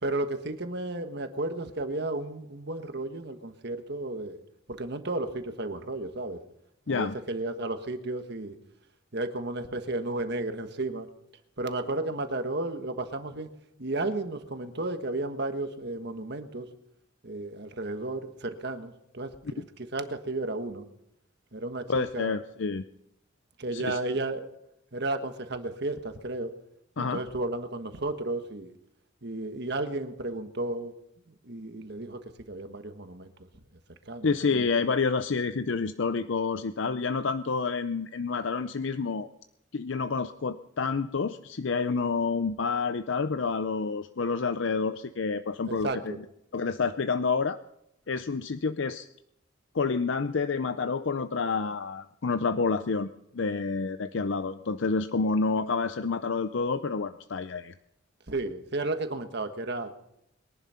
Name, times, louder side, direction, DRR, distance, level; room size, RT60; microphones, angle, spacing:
voice 1, 0.0-4.4 4.7-6.4 6.9-8.6 9.1-11.1 11.6-13.5 13.8-16.7 17.2-20.9 21.5-22.3 23.6-24.5 24.9-26.5 27.0-28.7 29.2-30.9 31.4-33.3 34.1-34.7 45.7-46.2 58.3-59.9, right 2 dB, 55° right, 8 dB, 1.4 m, -33 dB
voice 2, 21.9-22.8 23.7-24.0 27.0-27.2 34.2-39.3 39.7-45.9 46.5-47.6 48.1-49.1 49.7-57.7, left 4 dB, 65° left, 11 dB, 0.6 m, -28 dB
22.5 x 11.0 x 5.7 m, 0.79 s
head